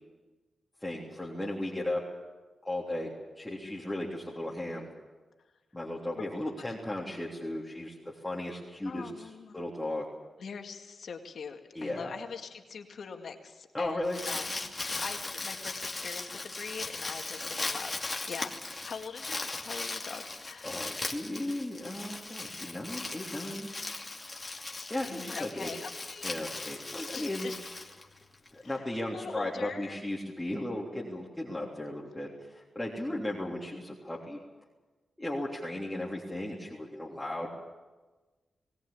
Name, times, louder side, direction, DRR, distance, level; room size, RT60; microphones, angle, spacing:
voice 1, 0.8-2.0 2.6-3.1 3.4-4.9 5.7-7.9 8.2-10.1 11.7-12.1 13.7-14.2 20.6-23.7 24.9-25.7 26.2-27.5 28.5-34.4 35.2-37.5, left 1 dB, 10° left, -4 dB, 3.3 m, -36 dB
voice 2, 8.8-9.6 10.4-14.7 15.0-18.5 18.8-21.0 25.1-26.3 27.1-27.6 28.6-28.9 29.1-30.0, left 5 dB, 70° left, 4 dB, 2.1 m, -42 dB
Crumpling crinkling, 13.8-28.5, left 3 dB, 30° left, 2.6 m, -38 dB
20.0 x 17.0 x 8.6 m, 1.3 s
cardioid pair, 60°, 0 cm